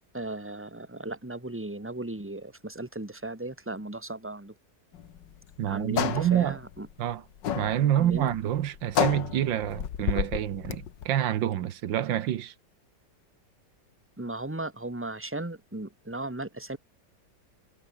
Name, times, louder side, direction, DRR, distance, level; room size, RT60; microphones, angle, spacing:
voice 1, 0.1-4.5 5.6-6.9 7.9-8.4 14.2-16.8, right 2 dB, 5° right, 2.3 m, -36 dB
sound 1, 4.9-11.1, left 9 dB, 75° left, 1.9 m, -31 dB
voice 2, 5.6-6.6 7.0-7.2 7.6-12.5, right 11 dB, 90° right, 1.8 m, -27 dB
omnidirectional pair, 2.0 m